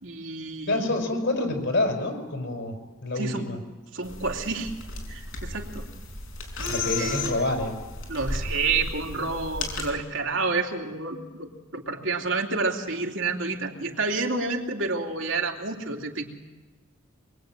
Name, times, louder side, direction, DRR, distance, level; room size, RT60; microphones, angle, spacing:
voice 1, 0.0-0.9 3.2-3.5 3.9-4.7 5.1-5.8 6.9-7.2 8.1-16.2, right 3 dB, 70° right, 1 dB, 3.1 m, -29 dB
voice 2, 0.7-2.8 3.0-3.6 6.7-7.8, left 2 dB, 60° left, 4 dB, 5.6 m, -27 dB
sound 1, 4.0-9.9, left 3 dB, 80° left, 6.0 m, -34 dB
25.5 x 23.0 x 9.3 m, 1.2 s
head